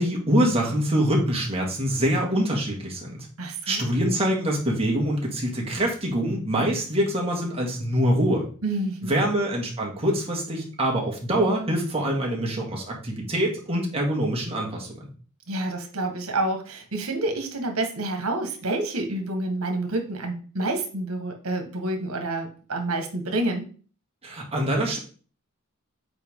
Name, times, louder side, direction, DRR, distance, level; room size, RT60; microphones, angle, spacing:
voice 1, 0.0-3.3 3.7-8.5 9.0-15.1 24.2-25.0, right 1 dB, 30° right, -1 dB, 2.2 m, -24 dB
voice 2, 3.4-3.8 8.6-9.2 15.5-23.7, right 2 dB, 80° right, 4 dB, 1.7 m, -28 dB
7.8 x 4.7 x 3.7 m, 0.40 s
head